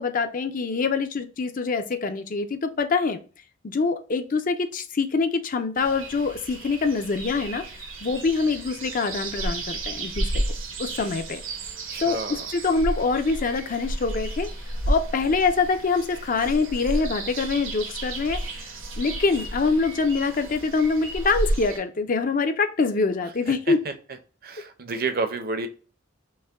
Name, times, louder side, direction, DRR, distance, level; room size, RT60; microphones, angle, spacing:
voice 1, 0.0-3.2 3.6-7.6 8.0-10.4 10.8-11.4 12.0-14.5 14.9-18.4 19.0-23.8, left 4 dB, 45° left, 0.5 m, -25 dB
sound 1, 5.8-21.8, right 1 dB, 80° right, 1.2 m, -32 dB
voice 2, 11.9-12.5 23.5-23.9 24.4-25.7, right 3 dB, 50° right, 0.7 m, -30 dB
5.4 x 2.2 x 3.5 m
head